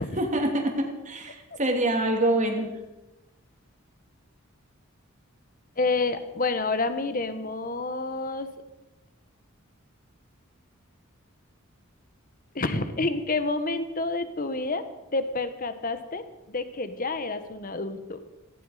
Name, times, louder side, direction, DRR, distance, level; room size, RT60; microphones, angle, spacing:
voice 1, 0.0-2.7, right 1 dB, 35° right, 3 dB, 2.6 m, -26 dB
voice 2, 5.8-8.5 12.5-14.8 15.1-18.2, left 3 dB, 40° left, 10 dB, 1.2 m, -29 dB
17.0 x 15.5 x 5.0 m, 1.0 s
head